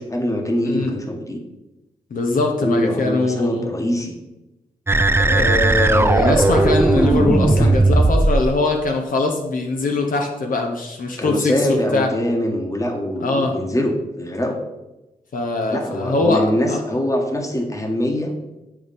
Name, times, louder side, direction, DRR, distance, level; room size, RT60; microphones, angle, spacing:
voice 1, 0.0-1.4 2.6-4.1 7.4-7.8 11.2-14.6 15.7-18.3, left 1 dB, 20° left, 3 dB, 1.4 m, -23 dB
voice 2, 2.1-3.7 5.2-12.1 13.2-13.6 15.3-16.8, left 3 dB, 70° left, 2 dB, 1.1 m, -21 dB
sound 1, 4.9-8.5, right 2 dB, 15° right, 0.4 m, -16 dB
7.0 x 5.8 x 4.1 m, 0.99 s
cardioid pair, 50°, 15 cm